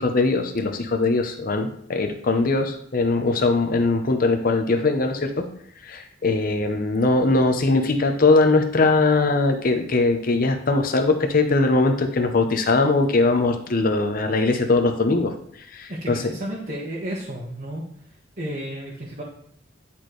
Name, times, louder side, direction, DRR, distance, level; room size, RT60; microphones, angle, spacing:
voice 1, 0.0-5.5 5.8-15.3 15.7-16.2, left 3 dB, 50° left, 5 dB, 0.7 m, -21 dB
voice 2, 15.9-17.8 18.4-19.2, right 1 dB, 45° right, -5 dB, 1.4 m, -32 dB
10.0 x 4.3 x 3.2 m, 0.65 s
head